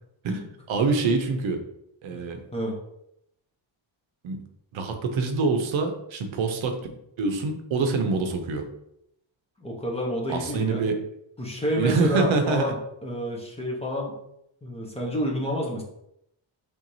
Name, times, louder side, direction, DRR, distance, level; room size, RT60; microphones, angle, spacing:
voice 1, 0.2-1.6 2.0-2.4 4.2-4.4 4.7-6.8 7.2-8.7 10.3-11.0 11.7-12.7, right 4 dB, 65° right, 5 dB, 0.7 m, -25 dB
voice 2, 9.6-10.8 11.4-14.2 14.6-15.8, equal, 10° left, -2 dB, 0.7 m, -29 dB
4.5 x 3.4 x 2.6 m, 0.79 s
wide cardioid pair, 175°, 50 cm